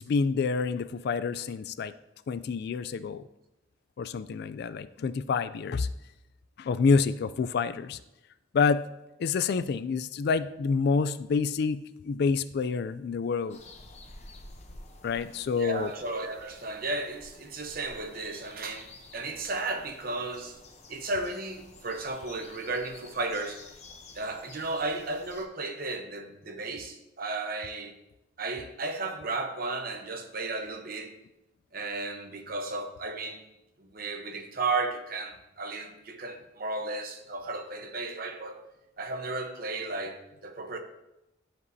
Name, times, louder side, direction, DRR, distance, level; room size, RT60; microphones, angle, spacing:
voice 1, 0.0-1.9 2.3-3.2 4.0-5.9 6.6-8.0 8.5-8.8 9.2-13.6 15.0-15.9, left 5 dB, 55° left, 0.3 m, -28 dB
sound 1, 13.5-25.4, left 2 dB, 35° left, 0.8 m, -51 dB
voice 2, 15.6-20.6 20.9-23.6 24.1-28.0 28.4-31.1 31.7-33.4 33.8-38.6 39.0-40.8, right 3 dB, 50° right, 0.9 m, -34 dB
12.5 x 5.3 x 2.7 m
head